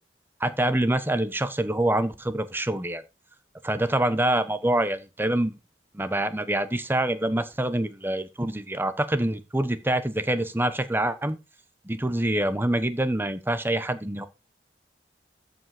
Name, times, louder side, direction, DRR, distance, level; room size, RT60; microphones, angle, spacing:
voice 1, 0.4-3.0 3.6-5.5 5.9-11.4 11.8-14.3, right 1 dB, 10° right, 1.0 m, -26 dB
13.5 x 5.3 x 5.0 m
head